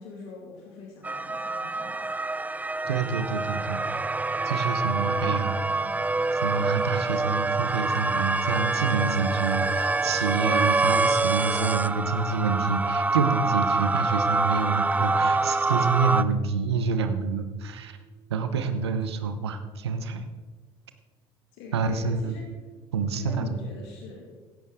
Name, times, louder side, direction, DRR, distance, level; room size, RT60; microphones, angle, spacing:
voice 1, 0.0-2.1 5.0-6.2 21.5-22.5 23.1-24.3, left 4 dB, 75° left, -1 dB, 2.2 m, -44 dB
sound 1, 1.0-16.2, right 3 dB, 10° right, 0.4 m, -26 dB
sound 2, 2.8-18.8, right 6 dB, 25° right, 1.0 m, -47 dB
voice 2, 2.9-3.8 4.4-5.6 6.3-18.0 18.3-20.3 21.7-22.3 22.9-23.6, right 5 dB, 85° right, 9 dB, 0.9 m, -27 dB
15.0 x 11.0 x 3.7 m, 1.4 s
hypercardioid pair, 60°, 13 cm